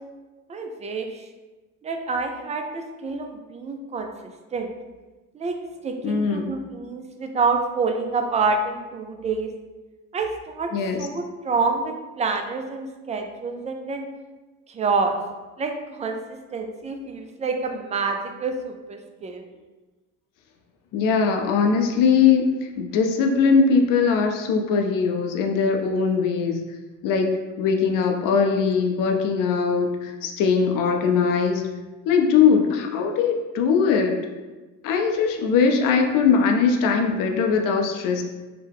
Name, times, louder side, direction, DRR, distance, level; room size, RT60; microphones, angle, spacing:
voice 1, 0.5-1.3 1.8-4.1 4.5-4.7 5.3-5.6 5.8-9.5 10.1-10.7 11.0-14.1 14.7-15.2 15.6-19.5 25.8-26.0, right 4 dB, 20° right, 4 dB, 0.3 m, -27 dB
voice 2, 6.0-6.5 10.7-11.1 20.9-26.6 27.0-31.6 32.1-34.3 34.8-38.2, left 5 dB, 55° left, 4 dB, 0.5 m, -21 dB
2.9 x 2.1 x 3.4 m, 1.2 s
hypercardioid pair, 65°, 38 cm